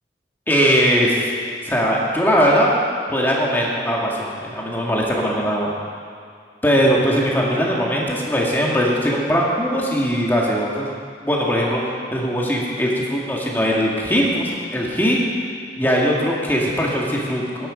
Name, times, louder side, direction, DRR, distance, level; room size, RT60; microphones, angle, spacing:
voice 1, 0.5-1.3 1.6-2.7 3.1-5.7 6.6-10.9 11.2-15.2 15.8-17.7, equal, 10° left, -3 dB, 1.9 m, -20 dB
14.5 x 10.5 x 5.1 m, 2.2 s
head